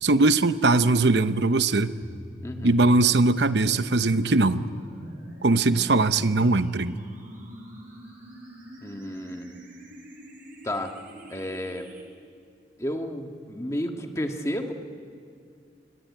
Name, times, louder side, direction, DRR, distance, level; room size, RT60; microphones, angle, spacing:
voice 1, 0.0-1.9 2.6-4.7 5.4-7.0, right 3 dB, 75° right, 12 dB, 0.9 m, -21 dB
sound 1, 2.0-12.0, equal, 45° right, 6.1 m, -43 dB
voice 2, 2.4-2.8 8.8-9.6 10.6-10.9 11.3-11.9 12.8-14.7, equal, 15° left, 4 dB, 1.6 m, -32 dB
24.5 x 23.5 x 9.5 m, 2.2 s
head